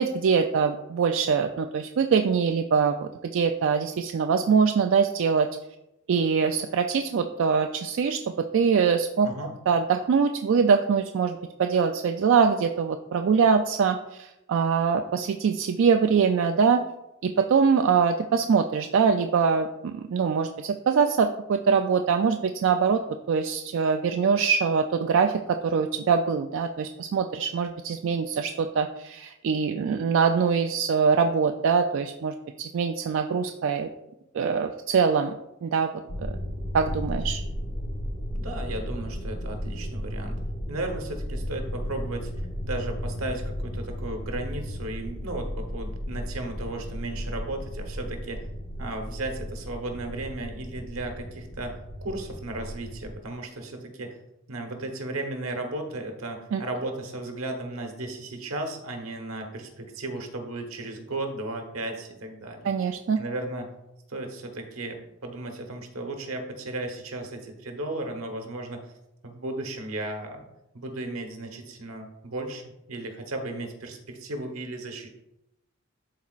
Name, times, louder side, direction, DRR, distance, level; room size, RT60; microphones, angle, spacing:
voice 1, 0.0-5.5 6.1-9.3 9.7-16.8 17.2-23.0 23.3-33.9 34.3-35.3 35.6-35.9 36.2-36.4 36.7-37.4 56.5-56.6 62.6-63.2, right 6 dB, 65° right, 5 dB, 0.3 m, -23 dB
voice 2, 9.2-9.5 38.3-40.4 40.7-42.3 42.6-48.5 48.8-51.8 52.0-54.2 54.5-62.7 63.2-63.7 64.1-68.8 69.2-70.5 70.7-72.6 72.9-75.1, right 2 dB, 85° right, 4 dB, 1.2 m, -35 dB
sound 1, 36.1-53.1, equal, 80° left, 1.4 m, -34 dB
11.5 x 4.1 x 2.4 m, 0.91 s
head